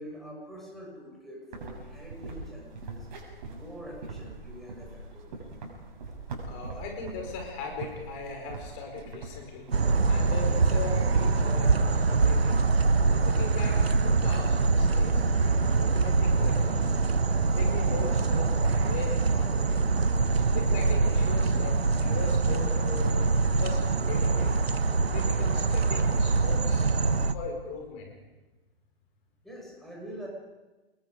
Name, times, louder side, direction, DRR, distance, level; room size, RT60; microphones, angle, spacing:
voice 1, 0.0-3.1 3.5-5.4 20.3-20.5 29.4-30.3, equal, ahead, -3 dB, 6.5 m, -45 dB
Sound Walk - Walking over Wood Bridge, 1.5-10.0, right 3 dB, 50° right, 6.6 m, -42 dB
voice 2, 6.5-9.6 10.1-12.6 13.1-17.0 17.5-19.8 20.5-24.5 25.1-26.9 27.3-28.1, left 4 dB, 30° left, 2 dB, 4.8 m, -39 dB
sound 1, 9.7-27.3, right 4 dB, 80° right, 1.3 m, -24 dB
27.0 x 21.0 x 5.1 m, 1.1 s
figure-of-eight pair, 125°, 31 cm